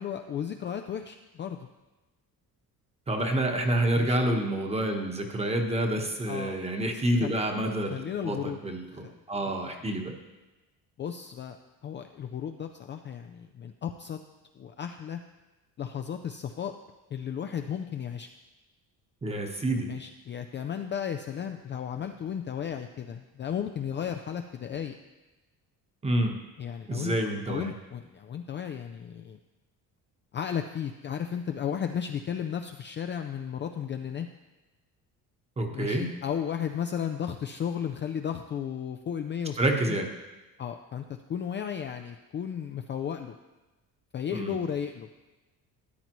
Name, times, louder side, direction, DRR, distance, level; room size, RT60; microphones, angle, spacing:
voice 1, 0.0-1.7 4.0-4.2 6.3-6.6 7.2-7.4 7.9-8.6 8.9-9.1 9.5-9.6 11.0-11.6 11.8-14.2 14.6-15.2 15.8-16.7 17.1-18.3 19.9-24.9 26.6-27.2 27.5-29.4 30.3-34.3 35.7-39.6 39.9-40.0 40.6-41.0 41.3-43.4 44.1-45.1, left 8 dB, 35° left, 6 dB, 0.4 m, -34 dB
voice 2, 3.1-10.2 19.2-19.9 26.0-26.4 26.9-27.7 35.6-36.1 39.6-40.1 44.3-44.6, right 1 dB, 15° right, 3 dB, 1.1 m, -28 dB
13.5 x 9.4 x 3.0 m, 1.1 s
cardioid pair, 145°, 36 cm